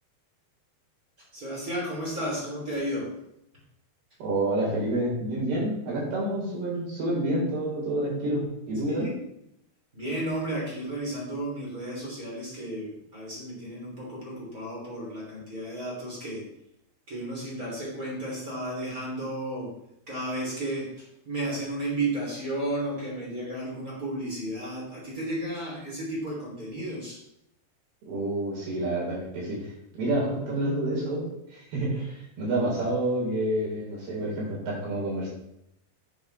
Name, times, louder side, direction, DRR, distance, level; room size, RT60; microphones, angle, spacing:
voice 1, 1.2-3.1 8.8-9.1 9.9-16.4 17.1-19.7 20.1-27.2, right 1 dB, 25° right, -4 dB, 3.2 m, -33 dB
voice 2, 4.2-8.4 8.7-9.1 28.1-31.3 31.5-35.3, right 1 dB, 70° right, -5 dB, 6.2 m, -28 dB
10.5 x 8.4 x 3.4 m, 0.82 s
omnidirectional pair, 4.7 m